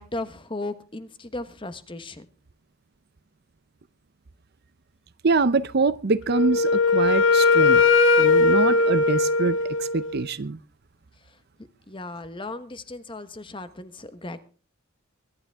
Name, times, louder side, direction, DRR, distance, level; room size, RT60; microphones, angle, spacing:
voice 1, 0.0-2.3 11.3-11.4 11.9-14.4, left 2 dB, 25° left, 1.3 m, -36 dB
voice 2, 5.2-7.8 8.2-10.6, right 3 dB, 45° right, 0.6 m, -24 dB
Wind instrument woodwind instrument, 6.3-10.2, left 3 dB, 55° left, 1.4 m, -19 dB
23.5 x 11.5 x 3.5 m
head